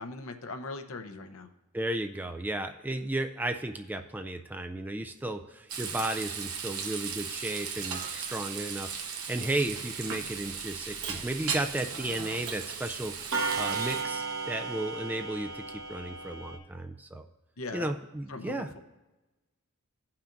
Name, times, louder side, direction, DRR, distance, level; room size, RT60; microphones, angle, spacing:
voice 1, 0.0-1.5 17.6-17.9 18.3-18.8, left 3 dB, 65° left, 7 dB, 0.8 m, -40 dB
voice 2, 1.7-17.3 17.7-18.8, right 1 dB, 10° right, 7 dB, 0.3 m, -34 dB
Frying (food), 5.7-14.0, right 6 dB, 80° right, 1.0 m, -37 dB
Clock, 11.0-11.1 12.2-12.3 12.5-12.7 13.3-16.6, right 4 dB, 60° right, 1.1 m, -34 dB
17.0 x 5.8 x 2.6 m, 1.1 s
head